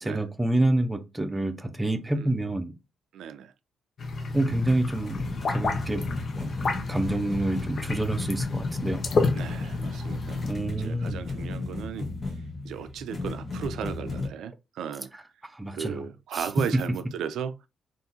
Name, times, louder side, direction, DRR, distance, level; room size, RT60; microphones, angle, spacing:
voice 1, 0.0-2.7 4.3-5.2 5.5-6.1 6.4-6.5 6.9-9.0 10.5-11.2 15.5-16.0 16.3-16.4, right 1 dB, 10° right, 0.6 m, -27 dB
voice 2, 3.1-3.5 9.3-12.1 12.6-15.1 15.7-17.6, right 8 dB, 85° right, 0.4 m, -36 dB
sound 1, 4.0-10.5, left 3 dB, 50° left, 0.7 m, -31 dB
sound 2, 4.5-14.3, left 3 dB, 35° left, 1.3 m, -34 dB
3.6 x 2.6 x 2.7 m
cardioid pair, 110°, 0 cm